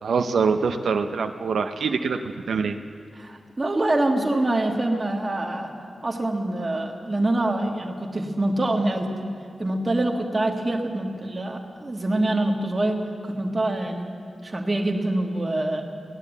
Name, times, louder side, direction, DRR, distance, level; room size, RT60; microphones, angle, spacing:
voice 1, 0.0-2.2 2.5-2.8, right 5 dB, 90° right, 6 dB, 0.7 m, -24 dB
voice 2, 3.2-5.7 6.0-9.1 9.6-14.1 14.4-15.8, right 1 dB, 20° right, 1 dB, 1.4 m, -25 dB
17.5 x 10.5 x 8.1 m, 2.3 s
wide cardioid pair, 180°, 0 cm